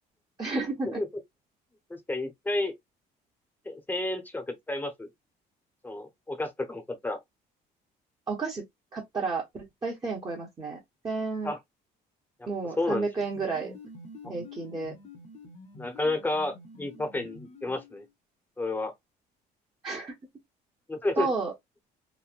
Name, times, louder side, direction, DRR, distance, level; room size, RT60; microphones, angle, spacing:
voice 1, 0.4-1.0 8.3-8.6 8.9-11.5 12.5-13.7 14.3-14.9 19.8-20.2 21.2-21.5, right 4 dB, 25° right, 0.9 m, -32 dB
voice 2, 1.9-2.7 3.7-5.1 5.8-7.2 11.4-11.6 12.8-13.1 14.2-14.3 15.8-18.0 18.6-18.9 20.9-21.3, left 2 dB, 10° left, 0.8 m, -31 dB
sound 1, 13.2-18.1, left 2 dB, 40° left, 0.8 m, -48 dB
3.1 x 2.1 x 2.5 m
cardioid pair, 110°, 17 cm